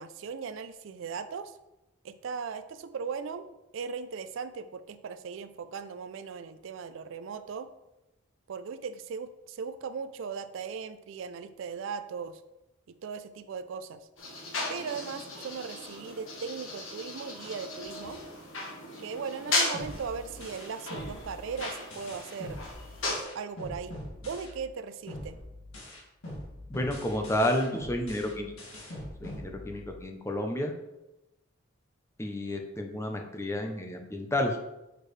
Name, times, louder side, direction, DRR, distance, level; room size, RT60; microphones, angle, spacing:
voice 1, 0.0-1.6 2.0-3.4 3.7-7.7 8.5-12.4 12.9-14.1 14.7-18.2 19.0-22.6 23.3-24.0 24.2-25.4, right 5 dB, 65° right, 10 dB, 0.4 m, -38 dB
sound 1, 14.2-23.2, left 2 dB, 65° left, 1.4 m, -36 dB
sound 2, 19.7-24.8 25.1-30.1, left 1 dB, 90° left, 1.7 m, -43 dB
voice 2, 26.7-28.5 29.2-30.7 32.2-34.6, left 1 dB, 15° left, 3 dB, 0.5 m, -31 dB
6.6 x 4.5 x 3.2 m, 0.95 s
head